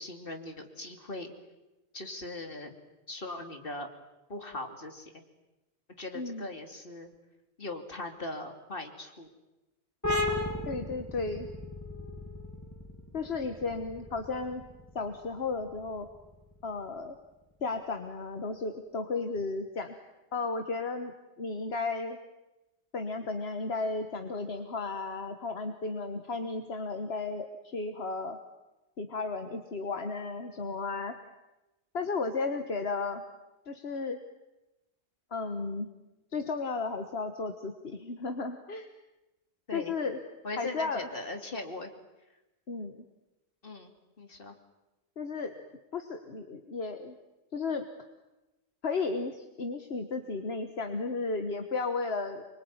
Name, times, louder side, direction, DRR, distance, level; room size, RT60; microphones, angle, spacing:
voice 1, 0.0-1.3 1.9-2.7 3.1-3.9 4.3-5.1 6.0-7.1 7.6-9.3 39.7-39.9 40.4-41.9 43.6-44.6, left 2 dB, 60° left, 5 dB, 3.0 m, -40 dB
voice 2, 6.1-6.5 10.6-11.5 13.1-14.6 14.9-16.1 16.6-17.2 17.6-19.9 20.3-22.2 22.9-28.4 29.0-31.1 31.9-33.2 33.7-34.2 35.3-35.9 36.3-38.9 39.7-40.2 40.6-41.1 42.7-43.0 45.2-45.5 45.9-47.1 47.5-47.8 48.8-52.4, left 3 dB, 75° left, 7 dB, 1.7 m, -34 dB
sound 1, 10.0-17.3, left 2 dB, 15° left, 2.8 m, -36 dB
25.5 x 23.5 x 9.6 m, 1.0 s
omnidirectional pair, 1.1 m